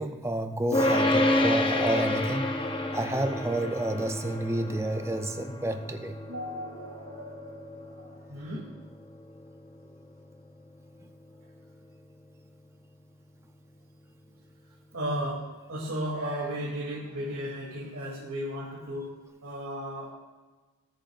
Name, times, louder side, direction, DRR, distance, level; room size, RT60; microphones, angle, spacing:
voice 1, 0.0-2.6 2.9-6.2, right 1 dB, 10° right, 7 dB, 0.5 m, -30 dB
sound 1, 0.7-12.0, left 1 dB, 20° left, 0.7 m, -30 dB
voice 2, 6.3-8.7 14.9-15.4 15.7-19.1 19.4-20.1, equal, 85° right, -7 dB, 2.9 m, -35 dB
19.0 x 8.7 x 2.5 m, 1.3 s
head